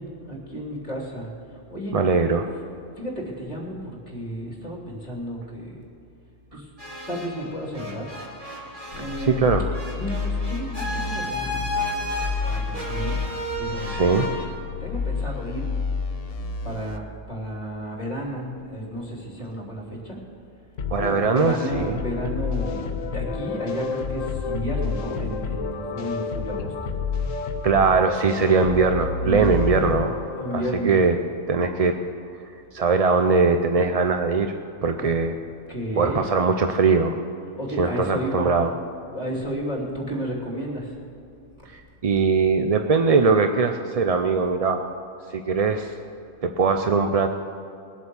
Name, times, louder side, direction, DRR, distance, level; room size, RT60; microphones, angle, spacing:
voice 1, 0.0-2.0 3.0-5.8 6.5-6.7 7.1-8.1 8.9-9.5 9.9-11.7 12.4-13.2 13.5-14.3 14.8-15.7 16.6-20.2 20.9-26.8 29.2-29.6 30.4-30.9 35.0-35.1 35.7-36.2 37.6-38.6 39.1-41.0, equal, 30° left, -2 dB, 3.1 m, -32 dB
voice 2, 1.9-2.5 9.2-9.7 13.8-14.3 20.9-22.0 27.6-30.1 30.5-31.2 31.5-32.0 32.7-34.5 34.8-35.3 36.0-37.2 37.8-38.7 41.7-44.8 45.3-45.9 46.4-47.3, right 4 dB, 45° right, 6 dB, 0.5 m, -21 dB
sound 1, 6.8-7.5 7.7-14.4, left 1 dB, 25° right, 2.5 m, -32 dB
sound 2, 8.9-17.0, left 4 dB, 55° left, 1.0 m, -30 dB
sound 3, 20.8-30.9, left 4 dB, 80° left, 1.3 m, -29 dB
20.5 x 7.9 x 7.1 m, 2.7 s
omnidirectional pair, 1.3 m